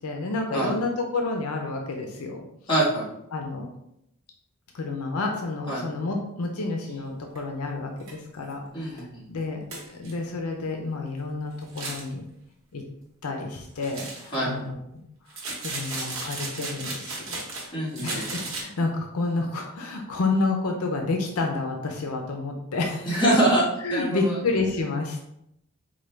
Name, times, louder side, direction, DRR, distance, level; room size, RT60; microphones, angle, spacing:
voice 1, 0.0-2.5 3.3-3.7 4.7-9.6 9.9-12.2 12.7-12.8 13.2-15.0 15.6-17.7 18.0-23.4 23.8-25.2, left 3 dB, 80° left, 2 dB, 0.5 m, -30 dB
voice 2, 2.7-3.1 5.7-5.8 8.7-9.2 14.3-14.6 17.7-18.2 23.0-24.3, right 1 dB, 20° left, -7 dB, 1.4 m, -24 dB
sound 1, 7.4-7.5 8.0-8.1 8.5-8.6 9.0-9.1 9.7-10.1 11.6-12.1 13.8-14.4 15.3-17.7 17.9-18.6, right 3 dB, 65° right, 1.0 m, -35 dB
4.6 x 2.2 x 3.2 m, 0.79 s
head